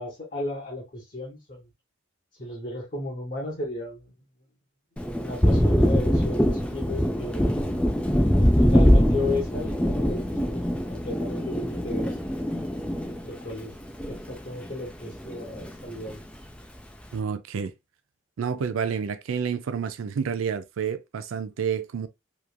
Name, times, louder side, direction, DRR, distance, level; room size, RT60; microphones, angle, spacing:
voice 1, 0.0-1.7 2.4-4.1 5.2-7.5 8.4-12.2 13.2-13.8 14.1-16.2, left 2 dB, 40° left, 0.8 m, -34 dB
Thunder, 5.0-14.7 15.0-16.2, equal, 5° left, 0.3 m, -23 dB
voice 2, 17.1-17.7 18.4-22.1, right 6 dB, 80° right, 0.4 m, -29 dB
3.0 x 2.4 x 2.2 m
head